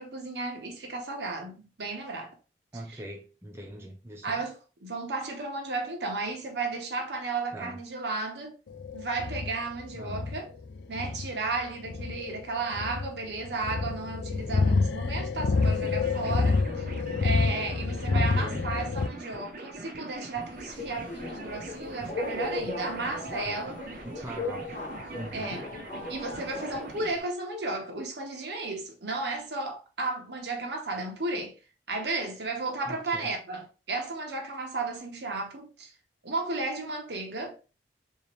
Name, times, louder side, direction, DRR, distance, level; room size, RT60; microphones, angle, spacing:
voice 1, 0.0-2.3 2.9-3.0 4.2-8.6 8.9-10.5 10.9-16.9 17.2-23.8 25.3-25.6 26.1-31.5 31.9-35.9 36.2-37.6, right 3 dB, 75° right, 0.9 m, -34 dB
voice 2, 2.7-4.4 7.5-7.8 9.9-10.3 18.1-18.7 24.0-24.8 25.1-25.7 32.8-33.3, right 1 dB, 15° right, 0.6 m, -41 dB
sound 1, 8.7-19.1, left 4 dB, 90° left, 0.4 m, -28 dB
sound 2, 15.6-27.1, right 2 dB, 50° right, 0.7 m, -43 dB
Subway metro underground, 20.4-27.2, left 2 dB, 45° left, 1.0 m, -37 dB
3.5 x 2.8 x 3.1 m
head